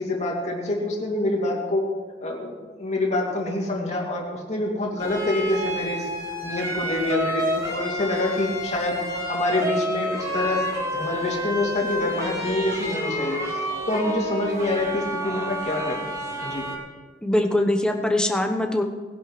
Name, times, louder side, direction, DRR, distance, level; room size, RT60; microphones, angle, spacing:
voice 1, 0.0-1.9 2.2-2.5 2.8-6.1 6.4-13.6 13.9-16.1 16.4-16.6, left 2 dB, 40° left, -1 dB, 2.6 m, -26 dB
sound 1, 5.0-16.8, equal, 20° right, 3.3 m, -29 dB
voice 2, 17.2-18.8, left 1 dB, 5° left, 5 dB, 0.9 m, -22 dB
20.0 x 11.0 x 3.2 m, 1.5 s
head